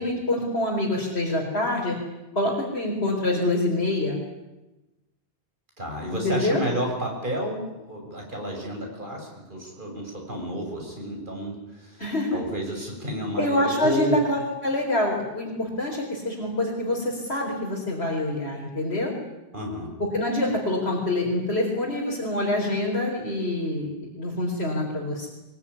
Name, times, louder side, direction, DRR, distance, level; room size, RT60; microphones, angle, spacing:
voice 1, 0.0-2.0 2.3-4.2 6.2-6.6 12.0-12.4 13.4-19.1 20.1-25.3, left 1 dB, 85° left, -2 dB, 4.7 m, -26 dB
voice 2, 5.8-14.2 19.5-19.9, equal, 50° right, 0 dB, 7.0 m, -31 dB
23.0 x 22.0 x 10.0 m, 1.0 s
omnidirectional pair, 1.1 m